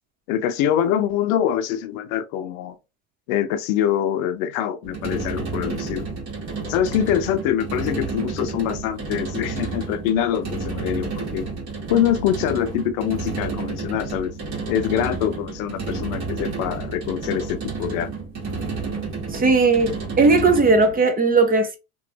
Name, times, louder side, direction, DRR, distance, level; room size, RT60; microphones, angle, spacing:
voice 1, 0.3-2.7 3.3-6.0 6.7-11.5 11.9-14.3 14.7-18.1, left 10 dB, 70° left, 0.7 m, -24 dB
sound 1, 4.8-21.0, right 4 dB, 40° right, 1.6 m, -31 dB
voice 2, 19.3-21.8, right 3 dB, 20° right, 0.6 m, -17 dB
3.0 x 2.5 x 2.8 m
supercardioid pair, 105°, 44 cm